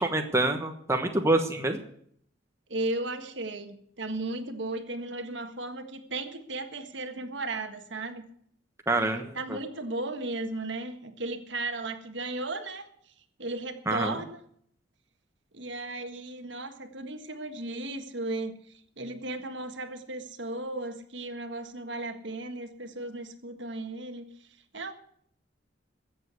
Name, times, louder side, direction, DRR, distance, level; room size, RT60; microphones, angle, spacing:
voice 1, 0.0-1.8 8.9-9.3 13.9-14.2, right 2 dB, 15° right, 4 dB, 1.2 m, -26 dB
voice 2, 2.7-8.2 9.3-12.9 13.4-14.4 15.5-18.6 19.0-24.3 24.7-24.9, right 2 dB, 65° right, 7 dB, 1.6 m, -35 dB
14.5 x 7.8 x 8.1 m, 0.64 s
head